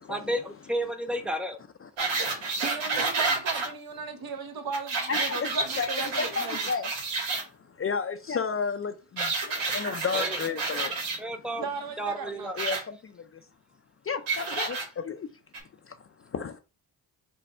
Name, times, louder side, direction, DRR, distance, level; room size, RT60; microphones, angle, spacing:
voice 1, 0.1-1.6 10.1-10.4 11.2-11.7 12.0-12.6, right 1 dB, ahead, 0.8 m, -32 dB
voice 2, 2.0-2.6 5.1-5.4 5.8-5.9 6.2-6.9 7.8-11.0 12.5-13.2 14.1-15.3 16.3-16.6, left 5 dB, 30° left, 0.5 m, -32 dB
sound 1, 2.0-3.7 4.7-7.4 9.2-11.2 12.6-12.8 14.3-14.8 15.5-15.6, right 3 dB, 85° right, 1.5 m, -29 dB
voice 3, 2.6-6.7 11.6-12.5, right 5 dB, 55° right, 0.9 m, -36 dB
4.3 x 2.3 x 4.3 m
supercardioid pair, 65°, 42 cm